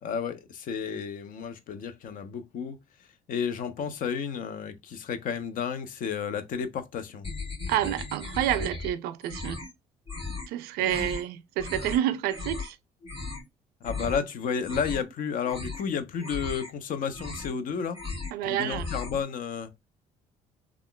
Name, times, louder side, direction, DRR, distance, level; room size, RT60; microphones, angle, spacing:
voice 1, 0.0-2.8 3.3-7.3 10.8-11.2 13.8-18.0 18.4-19.9, left 6 dB, 60° left, 0.7 m, -32 dB
sound 1, 7.2-8.9 9.2-9.7 10.1-10.5 10.8-11.2 11.6-12.0 12.3-12.7 13.0-13.5 13.8-14.2 14.5-15.1 15.4-15.9 16.2-16.7 17.0-17.6 17.9-18.4 18.7-19.2, left 3 dB, 35° left, 1.8 m, -37 dB
voice 2, 7.7-9.6 10.5-12.8 18.3-18.9, right 12 dB, 80° right, 0.4 m, -29 dB
3.5 x 2.3 x 2.2 m
supercardioid pair, 70°, 16 cm